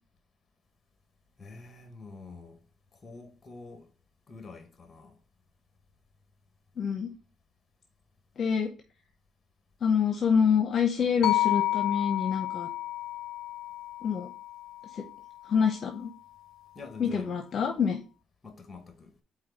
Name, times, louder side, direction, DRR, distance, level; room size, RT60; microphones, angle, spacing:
voice 1, 1.4-2.6 2.9-3.9 4.3-5.2 16.8-17.3 18.4-19.1, left 4 dB, 30° left, 1.7 m, -46 dB
voice 2, 6.8-7.1 8.4-8.7 9.8-12.7 14.0-14.3 14.9-15.0 15.4-16.1 17.0-18.0, left 6 dB, 55° left, 0.9 m, -26 dB
sound 1, 11.2-15.4, left 15 dB, 75° left, 0.4 m, -31 dB
4.8 x 4.4 x 4.7 m
cardioid pair, 90°, 0 cm